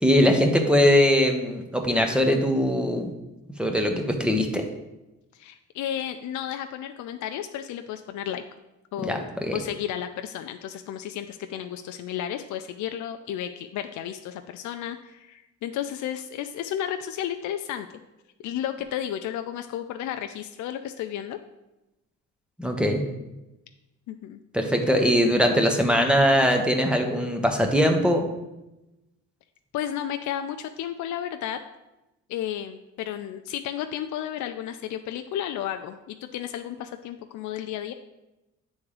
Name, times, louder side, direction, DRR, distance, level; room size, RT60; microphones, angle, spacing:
voice 1, 0.0-3.1 3.6-4.6 9.0-9.6 22.6-23.0 24.5-28.3, equal, 5° right, 3 dB, 1.0 m, -21 dB
voice 2, 5.3-8.4 8.9-17.9 18.4-21.4 24.1-24.4 29.7-31.6 32.3-37.9, left 10 dB, 70° left, 7 dB, 0.5 m, -33 dB
8.4 x 3.6 x 4.9 m, 0.97 s
cardioid pair, 90°, 30 cm